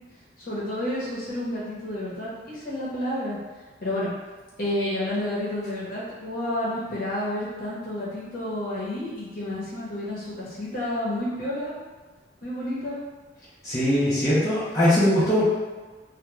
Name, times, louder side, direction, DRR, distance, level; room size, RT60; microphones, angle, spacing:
voice 1, 0.5-3.4 3.8-4.1 4.6-11.8 12.4-13.0, left 1 dB, 50° left, -7 dB, 0.9 m, -30 dB
voice 2, 13.6-15.5, equal, 20° left, -12 dB, 0.6 m, -21 dB
2.3 x 2.2 x 3.1 m, 1.4 s
head